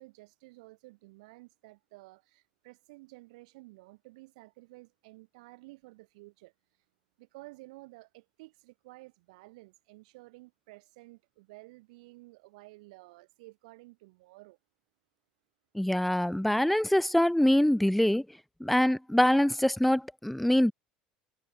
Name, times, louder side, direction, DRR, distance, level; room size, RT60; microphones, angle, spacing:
voice 1, 0.0-6.5 7.2-14.6, right 23 dB, 70° right, 2.9 m, -53 dB
voice 2, 15.7-18.3 18.6-20.7, left 1 dB, ahead, 0.4 m, -24 dB
hypercardioid pair, 70°, 4 cm